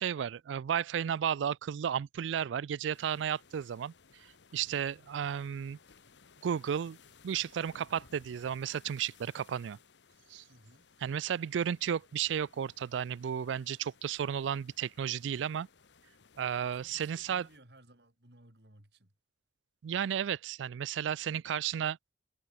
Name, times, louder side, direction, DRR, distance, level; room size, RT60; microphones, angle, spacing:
voice 1, 0.0-5.8 6.4-7.0 7.2-9.8 10.3-10.4 11.0-15.7 16.4-17.5 19.8-22.0, right 8 dB, 90° right, 0.3 m, -33 dB
sound 1, 2.9-17.6, left 5 dB, 75° left, 1.1 m, -61 dB
voice 2, 4.5-4.8 10.5-10.9 16.6-19.1, right 1 dB, 65° right, 4.6 m, -60 dB
head